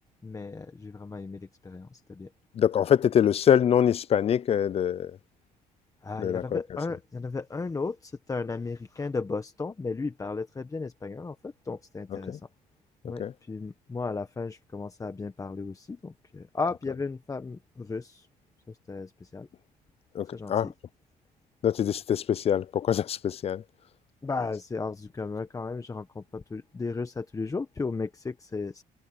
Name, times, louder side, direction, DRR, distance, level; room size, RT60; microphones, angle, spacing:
voice 1, 0.2-2.3 6.0-12.5 13.0-18.3 18.7-19.5 20.3-20.7 24.2-28.8, left 4 dB, 20° left, 1.2 m, -35 dB
voice 2, 2.6-5.1 6.2-6.6 12.3-12.4 13.2-13.3 20.1-20.7 21.6-23.6, left 9 dB, 35° left, 0.4 m, -24 dB
cardioid pair, 110°, 17 cm